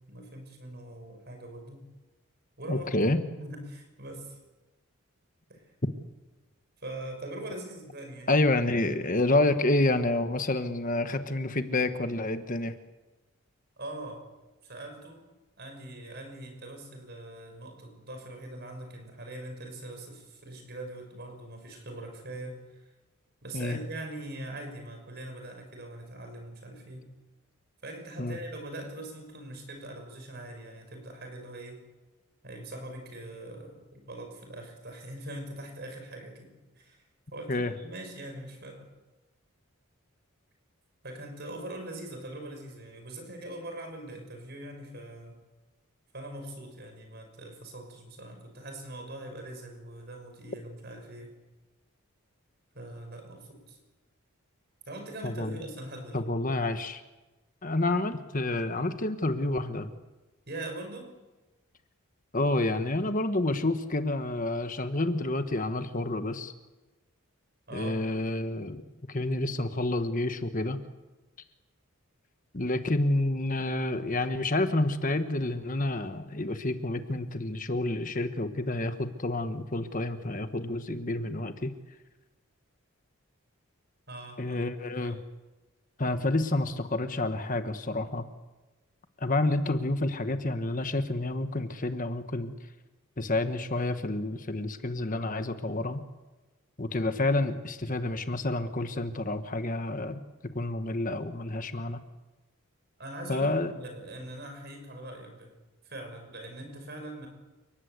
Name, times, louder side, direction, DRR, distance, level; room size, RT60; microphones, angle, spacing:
voice 1, 0.1-1.9 2.6-2.9 3.4-4.4 5.5-5.7 6.8-8.4 8.7-8.9 13.8-14.2 14.6-15.2 15.6-22.9 23.4-27.1 27.8-31.8 32.4-37.0 37.3-38.9 41.0-45.3 46.1-51.3 52.7-53.8 54.9-56.3 60.5-61.1 67.7-68.0 84.1-84.6 85.0-85.2 103.0-105.5 105.8-107.3, right 1 dB, 50° right, 5 dB, 6.3 m, -42 dB
voice 2, 2.7-3.2 8.3-12.7 23.5-23.8 28.2-28.4 37.5-37.7 55.2-55.6 56.1-57.0 57.6-59.9 62.3-66.5 67.7-68.8 69.1-70.8 72.5-81.7 84.4-85.2 86.0-88.2 89.2-92.5 93.2-96.0 96.8-100.2 100.5-102.0 103.3-103.7, left 2 dB, 40° left, 9 dB, 1.4 m, -29 dB
29.5 x 19.5 x 8.3 m, 1.1 s
head